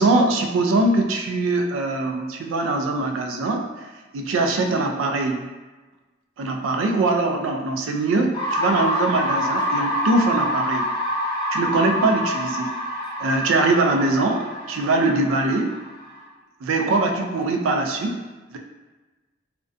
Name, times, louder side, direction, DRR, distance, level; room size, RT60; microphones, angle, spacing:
voice 1, 0.0-3.7 4.1-5.5 6.4-10.9 11.5-12.7 13.2-15.8 16.6-18.2 18.5-18.6, right 2 dB, 85° right, 3 dB, 0.3 m, -22 dB
sound 1, 8.3-16.2, equal, 20° left, 0.5 m, -26 dB
2.5 x 2.1 x 2.4 m, 1.2 s
head